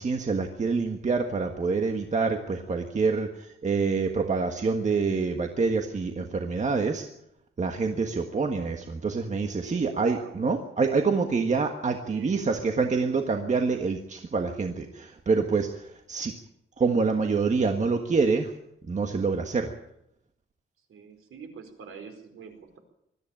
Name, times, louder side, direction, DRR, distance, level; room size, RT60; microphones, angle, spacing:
voice 1, 0.0-7.1 7.6-16.3 16.8-18.5 18.9-19.7, right 4 dB, 35° right, 4 dB, 1.5 m, -26 dB
voice 2, 9.6-10.4 12.0-12.7 20.9-22.8, right 6 dB, 90° right, 5 dB, 4.6 m, -44 dB
21.0 x 14.0 x 8.9 m, 0.78 s
wide cardioid pair, 150°, 21 cm